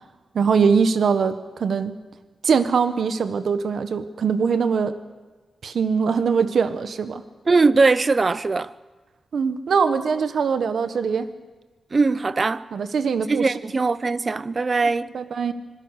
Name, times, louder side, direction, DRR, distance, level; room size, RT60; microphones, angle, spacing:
voice 1, 0.3-2.0 2.4-5.0 5.6-7.2 9.3-11.3 12.7-13.5 15.1-15.5, right 6 dB, 70° right, 1.3 m, -22 dB
voice 2, 7.5-8.7 11.9-12.6 13.3-15.1, right 3 dB, 35° right, 0.7 m, -20 dB
26.0 x 21.0 x 6.6 m
wide cardioid pair, 125°, 0 cm